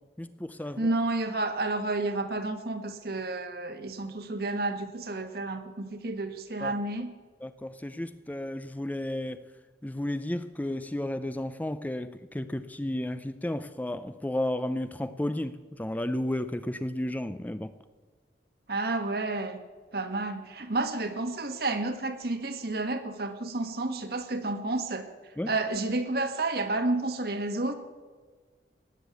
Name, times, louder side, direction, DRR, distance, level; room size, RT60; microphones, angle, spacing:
voice 1, 0.2-0.9 6.6-6.7 7.4-9.4 9.8-17.7 25.4-25.5, left 1 dB, 10° left, 12 dB, 0.4 m, -33 dB
voice 2, 0.8-7.1 18.7-19.6 19.9-25.1 25.5-27.7, right 2 dB, 60° right, 7 dB, 1.4 m, -30 dB
18.0 x 7.4 x 8.2 m, 1.4 s
head